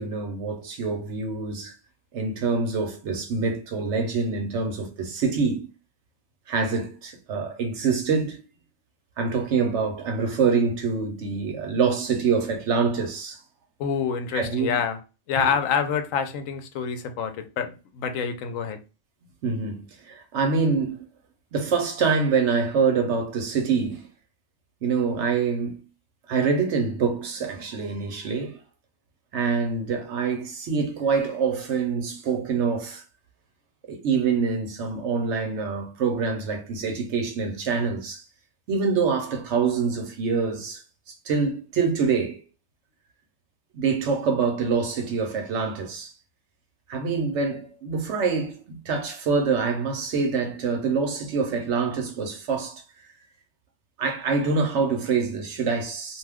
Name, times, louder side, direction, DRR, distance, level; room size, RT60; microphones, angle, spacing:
voice 1, 0.0-1.7 2.1-5.7 6.5-8.4 9.2-13.4 14.3-14.8 15.3-15.6 19.4-19.9 20.3-21.0 21.5-24.0 24.8-25.8 26.3-28.6 29.3-33.0 33.9-38.2 38.7-40.8 41.1-42.4 43.7-46.1 46.9-52.8 54.0-56.2, right 5 dB, 70° right, 1.0 m, -25 dB
voice 2, 13.8-15.0 15.3-18.8, left 7 dB, 85° left, 1.0 m, -27 dB
2.5 x 2.3 x 3.4 m
omnidirectional pair, 1.3 m